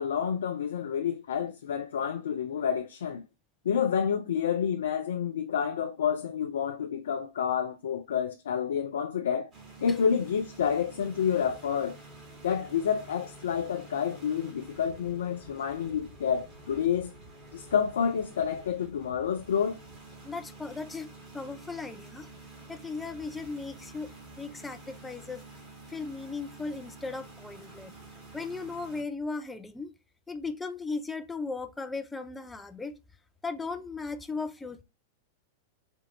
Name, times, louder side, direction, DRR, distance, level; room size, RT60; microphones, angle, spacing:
voice 1, 0.0-3.2 3.6-9.5 9.8-12.0 12.4-17.1 17.5-19.8, left 7 dB, 70° left, 0.4 m, -29 dB
sound 1, 9.5-29.0, right 2 dB, 25° right, 1.9 m, -49 dB
voice 2, 20.2-21.1 21.3-22.3 22.7-24.1 24.4-25.4 25.9-27.9 28.3-29.9 30.3-33.0 33.4-34.8, left 4 dB, 10° left, 0.4 m, -37 dB
4.4 x 2.4 x 2.6 m
hypercardioid pair, 100°, 0 cm